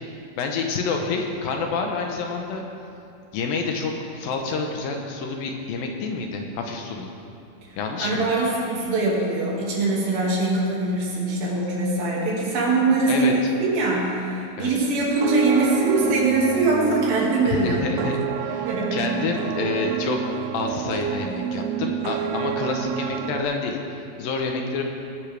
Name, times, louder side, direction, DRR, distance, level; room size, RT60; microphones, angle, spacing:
voice 1, 0.0-2.6 3.3-7.1 7.8-8.3 13.1-13.5 14.6-14.7 17.5-24.8, left 4 dB, 75° left, 2 dB, 2.6 m, -28 dB
voice 2, 8.0-18.1 18.7-19.0, right 2 dB, 70° right, -4 dB, 4.0 m, -22 dB
sound 1, 15.0-23.4, right 8 dB, 85° right, 1.9 m, -29 dB
20.0 x 11.0 x 3.5 m, 2.6 s
omnidirectional pair, 4.4 m